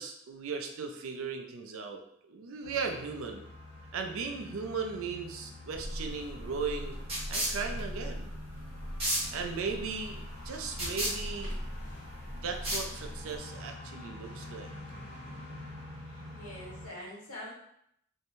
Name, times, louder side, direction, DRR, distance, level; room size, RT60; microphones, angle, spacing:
voice 1, 0.0-3.4 3.9-7.0 7.3-8.3 9.3-11.6 12.3-14.7, right 5 dB, 70° right, 4 dB, 0.4 m, -37 dB
sound 1, 2.6-16.9, left 1 dB, 55° left, 1.1 m, -47 dB
sound 2, 5.7-13.4, right 1 dB, 25° right, 0.9 m, -35 dB
voice 2, 16.3-17.5, left 1 dB, 80° left, -4 dB, 0.9 m, -44 dB
2.6 x 2.1 x 2.9 m, 0.73 s
head